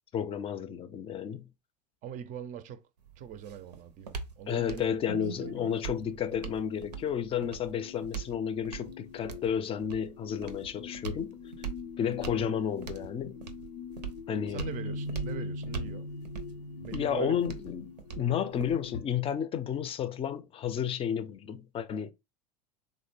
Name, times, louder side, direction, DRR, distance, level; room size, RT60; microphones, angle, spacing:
voice 1, 0.1-1.5 4.5-11.4 12.0-13.4 14.3-14.7 16.9-17.9 18.2-22.1, left 8 dB, 30° left, 0.4 m, -32 dB
voice 2, 2.0-2.8 3.2-4.9 5.4-5.7 14.5-16.1 16.8-17.4 18.7-18.8, right 8 dB, 40° right, 0.5 m, -41 dB
sound 1, 3.0-19.0, right 6 dB, 85° right, 0.6 m, -43 dB
sound 2, 5.1-19.0, left 3 dB, 75° left, 0.5 m, -42 dB
3.4 x 2.1 x 3.2 m
hypercardioid pair, 85°, 20 cm